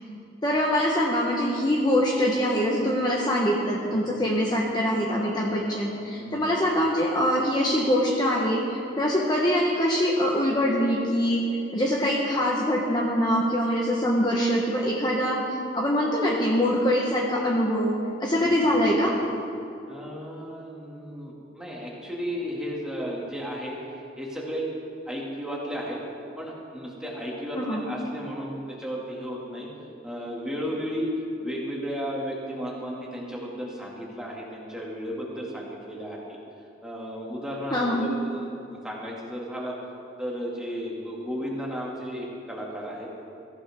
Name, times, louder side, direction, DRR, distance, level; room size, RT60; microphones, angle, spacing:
voice 1, 0.4-19.2 27.5-27.8 37.7-38.1, equal, 25° left, -3 dB, 1.2 m, -24 dB
voice 2, 3.9-4.2 5.4-5.5 6.2-6.4 18.4-18.7 19.9-23.8 24.2-24.7 25.1-26.0 26.4-29.7 30.0-31.1 31.4-36.4 36.8-39.8 40.2-43.1, equal, 5° right, -4 dB, 2.4 m, -34 dB
21.5 x 14.5 x 3.7 m, 2.6 s
head